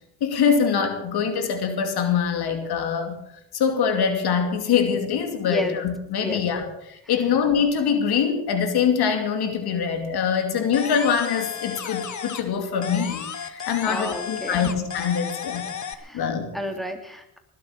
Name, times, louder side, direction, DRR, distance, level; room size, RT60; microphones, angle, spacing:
voice 1, 0.2-3.2 3.5-15.7 16.1-16.5, left 7 dB, 70° left, 6 dB, 2.7 m, -24 dB
voice 2, 5.4-5.8 6.2-6.4 13.9-14.7 15.9-16.3 16.5-17.4, left 1 dB, ahead, 4 dB, 3.1 m, -31 dB
sound 1, 10.7-12.5 12.8-15.9, left 7 dB, 45° left, 1.6 m, -34 dB
20.0 x 8.3 x 7.4 m, 0.80 s
supercardioid pair, 70°, 40 cm